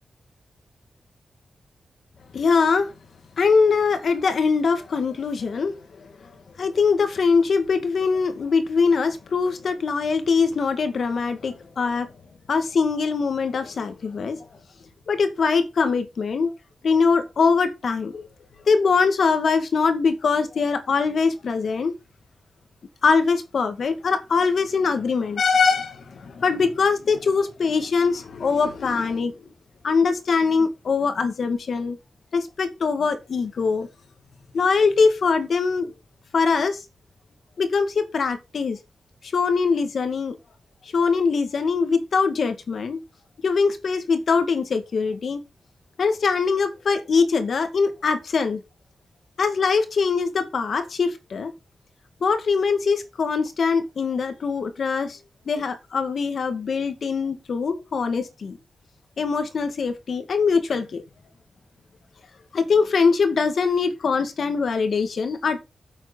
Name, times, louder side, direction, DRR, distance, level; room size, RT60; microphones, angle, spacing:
voice 1, 2.3-2.9 3.4-12.1 12.5-14.4 15.1-16.5 16.8-18.3 18.7-21.9 23.0-29.3 29.8-32.0 32.3-33.9 34.5-35.9 36.3-36.8 37.6-38.8 39.3-40.4 40.9-43.0 43.4-45.4 46.0-48.6 49.4-51.5 52.2-55.2 55.5-58.6 59.2-61.0 62.5-65.6, left 5 dB, 65° left, 2.0 m, -22 dB
9.8 x 7.9 x 4.0 m
wide cardioid pair, 135°, 0 cm